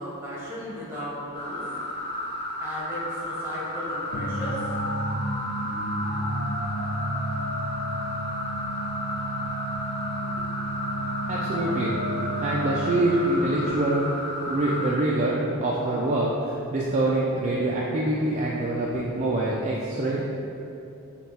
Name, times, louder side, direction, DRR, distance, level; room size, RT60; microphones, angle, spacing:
voice 1, 0.0-1.7 2.6-4.6, equal, 10° right, -7 dB, 1.1 m, -35 dB
sound 1, 1.3-15.0, left 1 dB, 25° left, 0.6 m, -33 dB
sound 2, 4.1-13.4, right 1 dB, 80° left, 0.5 m, -31 dB
voice 2, 11.3-11.9 12.4-14.2 14.5-20.2, right 1 dB, 30° right, -5 dB, 0.3 m, -25 dB
5.5 x 2.3 x 4.1 m, 2.8 s
head